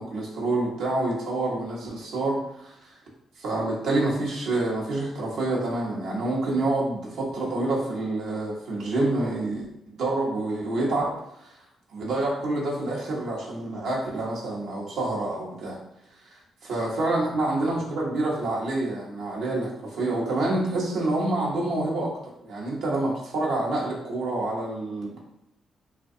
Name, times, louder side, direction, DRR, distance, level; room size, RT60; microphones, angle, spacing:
voice 1, 0.0-2.9 3.4-9.6 10.0-11.1 11.4-11.5 11.9-15.8 16.2-25.2, right 2 dB, 75° right, -3 dB, 0.7 m, -27 dB
2.5 x 2.2 x 2.6 m, 0.78 s
supercardioid pair, 60°, 0 cm